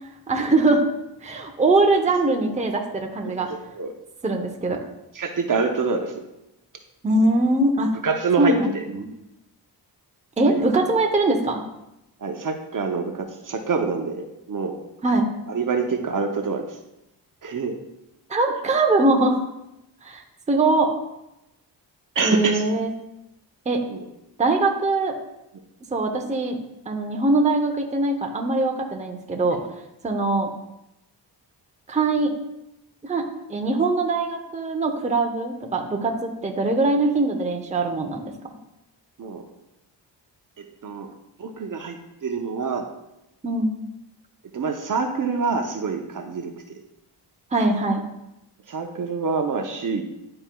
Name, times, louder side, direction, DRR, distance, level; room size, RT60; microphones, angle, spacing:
voice 1, 0.3-0.9 1.2-3.5 4.2-4.8 7.0-7.9 8.4-8.7 9.0-9.1 10.4-11.6 15.0-15.3 18.3-19.4 20.0-20.2 20.5-20.9 22.2-22.9 23.7-23.8 24.4-25.2 25.9-26.6 26.9-29.6 30.0-30.5 31.9-32.3 33.0-33.2 33.5-38.2 43.4-43.7 47.5-48.0, right 2 dB, 15° right, 3 dB, 0.7 m, -22 dB
voice 2, 3.2-3.9 5.1-6.2 8.0-8.8 10.4-10.7 12.2-14.8 15.5-16.8 17.4-17.8 22.1-22.6 23.9-24.1 39.2-39.4 40.6-41.1 41.4-42.9 44.5-46.8 48.7-50.0, right 4 dB, 50° right, 4 dB, 0.7 m, -26 dB
11.0 x 4.3 x 2.3 m, 0.89 s
wide cardioid pair, 100°, 43 cm